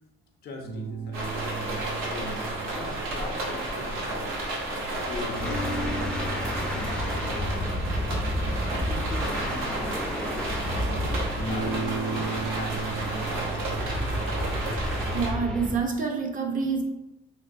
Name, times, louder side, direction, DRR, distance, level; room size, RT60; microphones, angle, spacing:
voice 1, 0.4-4.4 4.8-8.0 8.7-10.6 11.4-13.3, left 3 dB, 50° left, 2 dB, 0.5 m, -41 dB
sound 1, 0.6-4.5 5.3-10.4 11.4-15.6, right 3 dB, 60° right, 1.3 m, -36 dB
sound 2, 1.1-15.3, right 1 dB, 90° right, 0.8 m, -32 dB
sound 3, 5.3-15.8, equal, 5° left, 0.5 m, -32 dB
voice 2, 15.1-16.8, right 5 dB, 45° right, 3 dB, 0.6 m, -27 dB
3.0 x 2.9 x 2.6 m, 0.94 s
cardioid pair, 90°, 20 cm